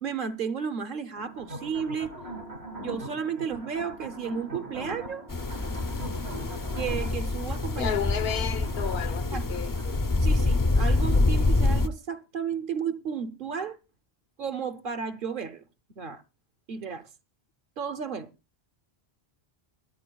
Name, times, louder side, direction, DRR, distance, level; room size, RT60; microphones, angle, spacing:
voice 1, 0.0-2.1 2.8-5.2 6.8-7.9 9.3-9.5 10.2-13.8 14.4-15.6 16.0-16.2 16.7-17.1 17.8-18.3, right 6 dB, 60° right, 0.9 m, -33 dB
sound 1, 1.1-10.0, right 1 dB, 80° right, 2.0 m, -41 dB
sound 2, 5.3-11.9, left 2 dB, 30° left, 0.4 m, -26 dB
voice 2, 7.8-10.0, left 8 dB, 75° left, 1.0 m, -32 dB
22.5 x 9.4 x 2.3 m
omnidirectional pair, 1.1 m